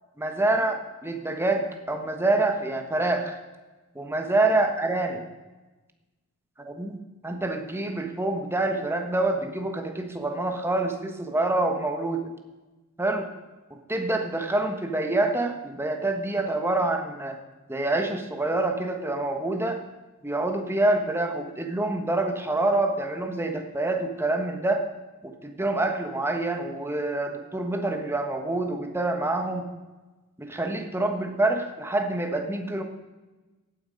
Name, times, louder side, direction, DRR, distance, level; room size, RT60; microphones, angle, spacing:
voice 1, 0.2-3.4 3.9-5.2 6.6-7.0 7.2-12.3 13.0-13.3 13.7-17.4 17.7-19.8 20.2-24.8 25.2-29.7 30.4-32.8, right 2 dB, 10° right, 4 dB, 1.3 m, -26 dB
16.0 x 9.2 x 5.3 m, 1.2 s
head